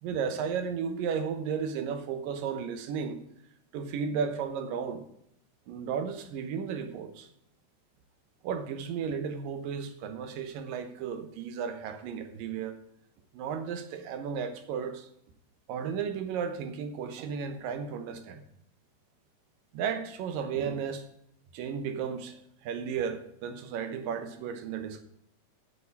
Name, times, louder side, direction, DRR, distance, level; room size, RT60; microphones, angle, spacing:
voice 1, 0.0-3.2 3.7-5.0 5.7-7.3 8.4-12.8 13.3-15.1 15.7-18.4 19.7-21.1 21.5-25.0, right 6 dB, 85° right, 9 dB, 2.8 m, -34 dB
8.5 x 6.9 x 8.3 m, 0.72 s
omnidirectional pair, 3.8 m